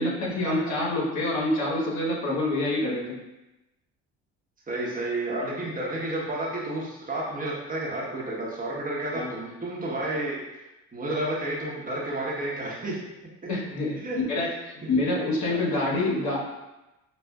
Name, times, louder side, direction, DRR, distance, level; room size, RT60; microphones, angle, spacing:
voice 1, 0.0-3.2 9.1-9.3 13.5-16.4, left 2 dB, 60° left, -4 dB, 1.3 m, -27 dB
voice 2, 4.7-10.4 10.9-13.0 14.0-14.2 15.2-15.6, right 1 dB, 25° right, -5 dB, 1.1 m, -31 dB
6.5 x 2.3 x 2.3 m, 1.0 s
supercardioid pair, 90°, 33 cm